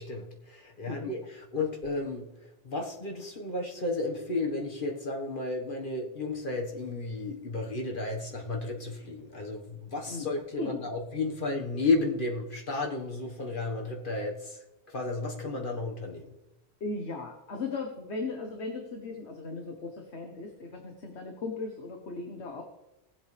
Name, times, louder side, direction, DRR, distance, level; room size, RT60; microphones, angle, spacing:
voice 1, 0.0-16.4, left 3 dB, 50° left, 1 dB, 1.7 m, -33 dB
voice 2, 16.8-22.6, left 3 dB, 85° left, 2 dB, 1.5 m, -37 dB
18.5 x 7.8 x 3.4 m, 0.91 s
omnidirectional pair, 1.1 m